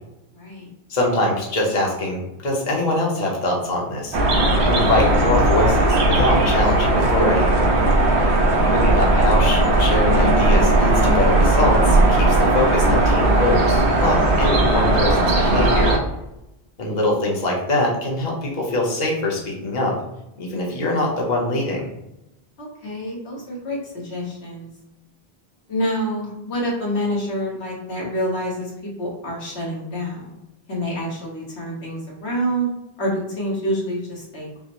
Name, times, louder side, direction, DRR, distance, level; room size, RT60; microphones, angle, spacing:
voice 1, 0.3-0.7 8.0-8.4 22.6-24.7 25.7-30.3 30.7-32.7 33.0-34.6, equal, 80° left, -3 dB, 1.5 m, -27 dB
voice 2, 0.9-4.2 4.6-7.5 8.7-15.9 16.8-20.0 20.4-21.8, left 1 dB, 45° left, -2 dB, 1.0 m, -23 dB
sound 1, 4.1-16.0, right 2 dB, 90° right, 1.1 m, -17 dB
5.7 x 2.0 x 3.0 m, 0.89 s
omnidirectional pair, 1.1 m